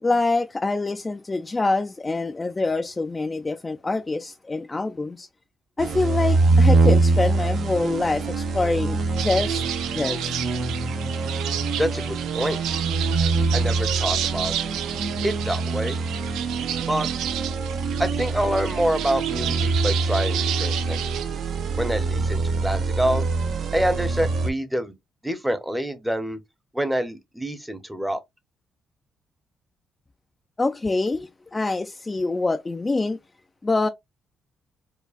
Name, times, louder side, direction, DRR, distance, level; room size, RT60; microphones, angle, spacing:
voice 1, 0.0-5.3 5.8-9.6 9.9-10.3 30.6-33.2 33.6-33.9, left 3 dB, 25° left, 0.3 m, -25 dB
sound 1, 5.8-24.5, right 3 dB, 65° right, 0.8 m, -24 dB
sound 2, 9.2-21.2, right 10 dB, 90° right, 0.5 m, -32 dB
voice 2, 11.8-12.6 13.5-14.5 15.2-16.0 16.9-17.1 18.0-21.0 21.8-23.3 23.7-24.9 25.2-26.4 26.7-28.2, equal, 5° right, 0.7 m, -26 dB
4.7 x 2.3 x 2.4 m
cardioid pair, 90°, 0 cm